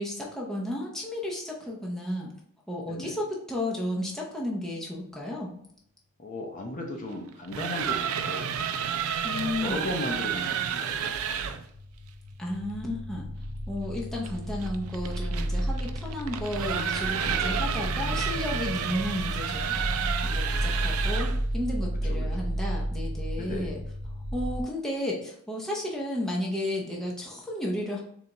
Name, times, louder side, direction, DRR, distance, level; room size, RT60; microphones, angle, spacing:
voice 1, 0.0-2.3 2.7-5.6 9.2-9.9 12.4-13.3 13.7-19.8 20.2-23.8 24.3-28.0, left 1 dB, ahead, -3 dB, 0.7 m, -33 dB
voice 2, 6.2-8.5 9.2-11.6 17.2-17.6 22.1-22.3 23.4-23.7, left 1 dB, 40° left, 1 dB, 0.7 m, -36 dB
sound 1, 7.3-11.6 14.2-21.4, right 8 dB, 75° right, 0.4 m, -31 dB
sound 2, 9.1-10.5 10.8-24.6, equal, 75° left, 1.3 m, -32 dB
3.9 x 3.3 x 2.9 m, 0.65 s
head